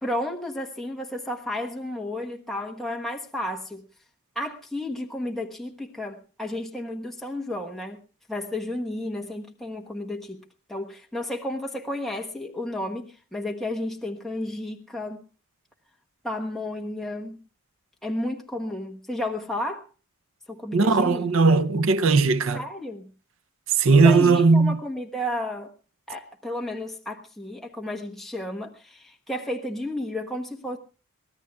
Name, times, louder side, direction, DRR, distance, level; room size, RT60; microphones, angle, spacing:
voice 1, 0.0-3.8 4.3-8.0 8.3-10.4 10.7-15.2 16.2-17.4 18.0-19.9 20.5-21.3 22.5-23.1 24.0-25.7 26.1-30.8, left 1 dB, ahead, 1.1 m, -32 dB
voice 2, 20.7-22.6 23.8-24.8, right 4 dB, 60° right, 0.6 m, -18 dB
23.5 x 18.5 x 2.3 m
head